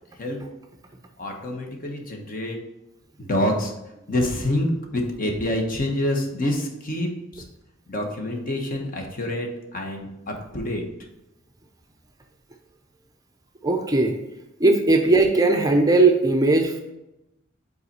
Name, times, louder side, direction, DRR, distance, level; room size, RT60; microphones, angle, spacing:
voice 1, 1.2-2.6 3.2-3.7 4.1-7.4 7.9-10.8, left 1 dB, 45° left, 2 dB, 1.0 m, -27 dB
voice 2, 13.6-14.2 14.6-16.8, right 2 dB, 20° right, 3 dB, 0.5 m, -18 dB
5.5 x 4.1 x 4.1 m, 0.92 s
head